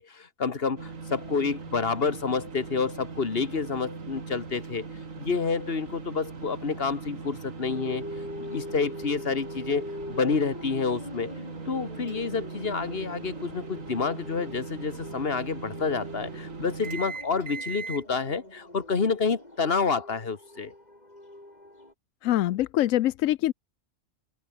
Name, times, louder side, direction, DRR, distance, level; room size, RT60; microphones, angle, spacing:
voice 1, 0.0-4.9 5.2-8.0 8.4-11.3 11.7-20.7, left 5 dB, 50° left, 2.0 m, -29 dB
sound 1, 0.8-18.0, right 4 dB, 85° right, 2.7 m, -40 dB
sound 2, 7.6-21.9, left 1 dB, 30° left, 5.0 m, -43 dB
voice 2, 22.2-23.5, left 14 dB, 85° left, 1.0 m, -24 dB
open air
omnidirectional pair, 1.3 m